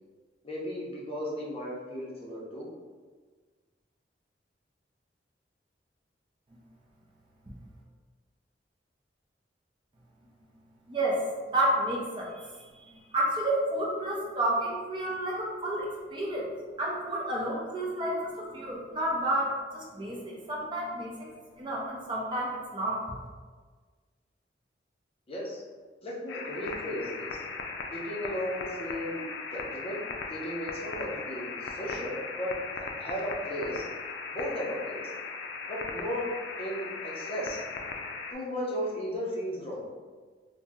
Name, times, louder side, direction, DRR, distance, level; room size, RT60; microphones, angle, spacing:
voice 1, 0.4-2.7 25.3-25.6 26.0-27.4 27.9-29.2 29.5-30.0 30.3-33.8 34.3-35.1 35.7-36.2 36.6-37.6 38.3-39.9, equal, 35° left, -4 dB, 0.6 m, -35 dB
voice 2, 10.9-11.2 11.5-12.5 13.1-16.5 16.8-21.1 21.6-23.0, right 1 dB, 30° right, -4 dB, 0.5 m, -30 dB
sound 1, 26.3-38.3, left 4 dB, 85° left, 0.3 m, -38 dB
2.7 x 2.0 x 3.4 m, 1.5 s
head